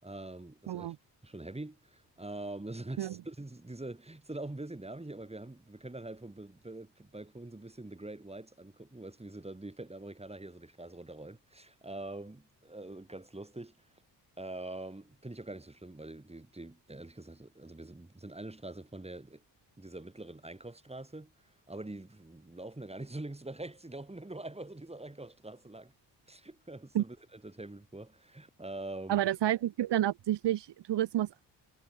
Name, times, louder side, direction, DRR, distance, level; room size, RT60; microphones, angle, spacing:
voice 1, 0.0-0.9 1.2-13.8 14.4-19.4 19.8-25.9 26.3-29.2, right 2 dB, 15° right, 7.8 m, -44 dB
voice 2, 29.1-31.5, right 12 dB, 75° right, 1.6 m, -30 dB
cardioid pair, 80°, 41 cm